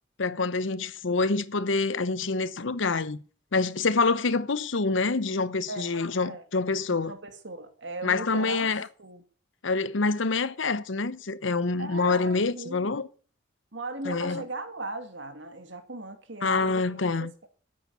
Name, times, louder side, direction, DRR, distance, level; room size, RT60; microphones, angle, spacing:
voice 1, 0.2-3.2 3.5-7.1 8.0-8.9 9.6-13.1 14.0-14.4 16.4-17.3, left 3 dB, 85° left, 0.9 m, -26 dB
voice 2, 5.7-6.4 6.9-8.7 9.0-9.2 11.8-13.0 13.7-17.5, right 2 dB, 75° right, 2.3 m, -38 dB
13.0 x 8.9 x 7.0 m
head